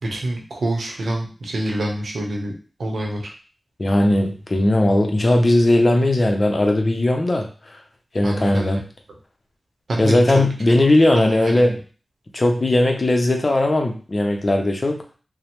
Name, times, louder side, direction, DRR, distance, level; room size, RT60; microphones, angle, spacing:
voice 1, 0.0-2.5 2.8-3.3 8.2-8.8 9.9-10.2 10.7-11.7, right 1 dB, 90° right, 0 dB, 0.7 m, -27 dB
voice 2, 3.8-7.5 8.1-8.8 10.0-11.7 12.3-15.0, left 1 dB, 45° left, 3 dB, 0.6 m, -18 dB
3.1 x 2.0 x 2.9 m, 0.38 s
wide cardioid pair, 65°, 0 cm